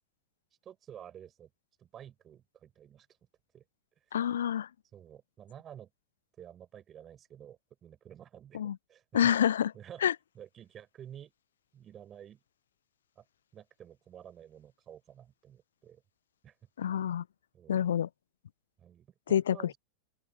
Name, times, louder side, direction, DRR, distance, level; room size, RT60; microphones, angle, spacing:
voice 1, 0.6-1.5 1.8-3.1 3.5-3.6 4.0-4.1 4.9-5.9 6.4-8.6 8.9-9.3 9.7-10.0 10.3-11.3 11.7-12.4 13.2-13.3 13.5-16.0 16.4-16.6 17.5-17.9 18.8-19.8, right 9 dB, 25° right, 6.0 m, -51 dB
voice 2, 4.1-4.7 8.5-8.8 9.1-9.7 10.0-10.1 16.8-17.2 17.7-18.1 19.3-19.7, left 9 dB, 65° left, 0.4 m, -27 dB
open air
figure-of-eight pair, 90°, 0 cm